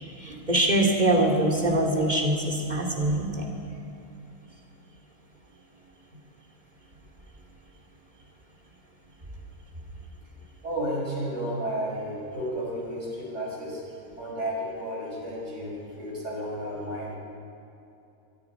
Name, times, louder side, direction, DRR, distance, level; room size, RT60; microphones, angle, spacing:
voice 1, 0.2-3.5, right 1 dB, 30° right, -1 dB, 3.0 m, -23 dB
voice 2, 10.6-13.8 14.2-17.2, equal, 55° right, -4 dB, 6.2 m, -32 dB
24.0 x 23.0 x 4.9 m, 2.8 s
omnidirectional pair, 1.4 m